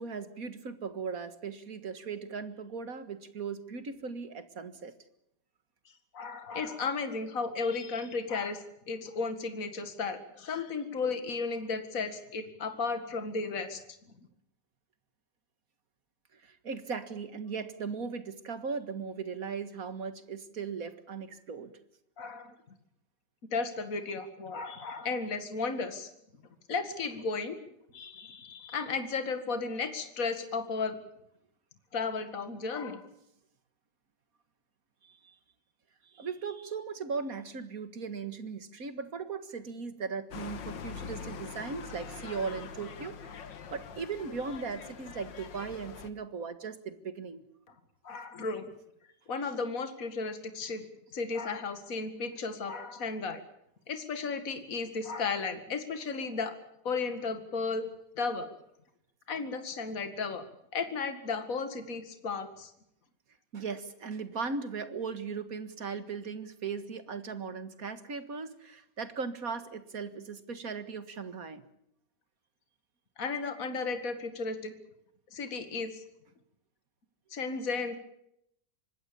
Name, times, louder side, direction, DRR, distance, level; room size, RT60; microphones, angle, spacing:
voice 1, 0.0-4.9 16.3-21.7 35.0-35.4 36.0-47.4 63.5-71.7, right 5 dB, 50° right, 11 dB, 2.1 m, -38 dB
voice 2, 6.1-13.8 22.2-22.5 23.5-26.1 26.7-27.6 27.9-31.0 31.9-33.0 48.0-48.7 49.3-50.8 51.1-53.4 53.9-56.5 56.8-57.9 58.2-58.5 59.3-60.4 60.7-62.7 73.2-74.7 75.3-76.0 77.3-78.0, left 4 dB, 50° left, 8 dB, 2.4 m, -34 dB
sound 1, 40.3-46.1, left 6 dB, 85° left, 2.1 m, -44 dB
25.0 x 20.0 x 7.0 m, 0.77 s
omnidirectional pair, 1.9 m